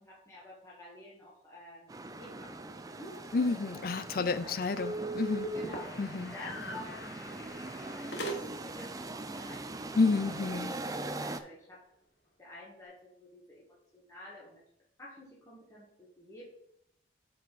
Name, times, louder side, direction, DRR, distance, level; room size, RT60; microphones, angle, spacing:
voice 1, 0.0-5.0 5.5-10.4 11.0-11.9 12.4-14.6 15.0-16.4, left 1 dB, 15° left, -7 dB, 1.7 m, -51 dB
sound 1, 1.9-11.4, right 2 dB, 20° right, 0.4 m, -42 dB
voice 2, 3.3-5.5 6.0-6.3 10.0-10.7, left 4 dB, 50° left, 13 dB, 0.4 m, -30 dB
sound 2, 4.1-8.8, right 1 dB, 70° left, 1.3 m, -40 dB
9.2 x 4.6 x 4.1 m, 0.72 s
head